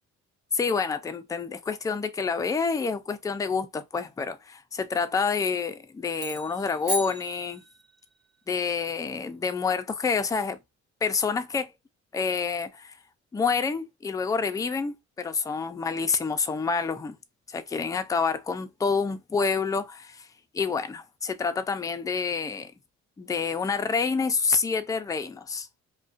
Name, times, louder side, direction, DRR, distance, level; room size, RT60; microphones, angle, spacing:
voice 1, 0.5-7.6 8.5-10.6 11.0-11.7 12.1-12.9 13.3-17.2 17.5-20.3 20.5-22.7 23.2-25.7, left 5 dB, 10° left, 0.3 m, -28 dB
sound 1, 6.1-8.1, right 1 dB, 75° right, 1.2 m, -35 dB
2.3 x 2.2 x 2.5 m
cardioid pair, 90°, 30 cm